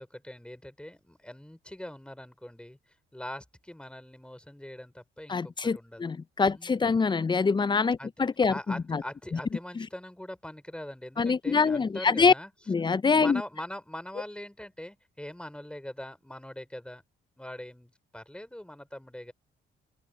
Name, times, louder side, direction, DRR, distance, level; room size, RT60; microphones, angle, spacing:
voice 1, 0.0-2.8 3.1-6.0 6.5-6.9 8.0-8.2 8.5-12.5 13.2-17.0 17.4-19.3, left 1 dB, 5° left, 4.9 m, -42 dB
voice 2, 5.3-8.5 8.9-9.0 11.2-12.3 12.7-13.4, left 5 dB, 25° left, 0.5 m, -24 dB
open air
cardioid pair, 90°, 20 cm